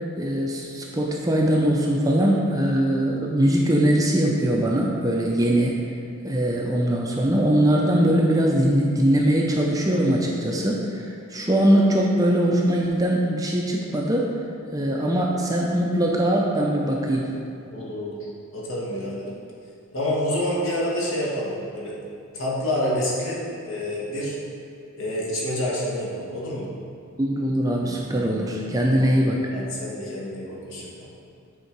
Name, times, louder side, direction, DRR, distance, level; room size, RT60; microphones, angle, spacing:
voice 1, 0.2-5.7 6.2-14.3 14.7-17.3 27.2-29.4, right 1 dB, 15° right, -1 dB, 0.5 m, -21 dB
voice 2, 17.7-18.2 18.5-19.3 19.9-21.9 22.3-24.4 24.9-26.7 28.9-29.1 29.5-31.0, left 1 dB, 60° left, -5 dB, 1.5 m, -28 dB
8.0 x 3.7 x 4.6 m, 2.4 s
head